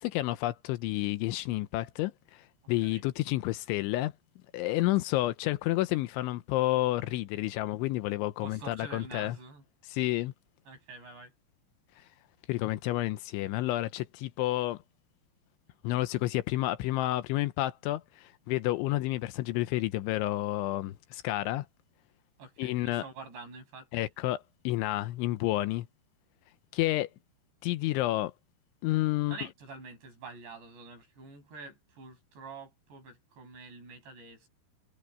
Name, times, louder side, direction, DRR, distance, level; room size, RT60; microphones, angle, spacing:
voice 1, 0.0-4.1 4.5-9.4 9.9-10.3 12.0-12.1 12.5-14.8 15.8-21.7 22.6-23.0 23.9-25.9 26.7-27.1 27.6-28.3 28.8-29.4, left 16 dB, 85° left, 3.2 m, -30 dB
voice 2, 8.4-9.6 10.7-11.3 22.4-23.9 29.2-34.5, right 3 dB, 65° right, 9.4 m, -47 dB
omnidirectional pair, 5.3 m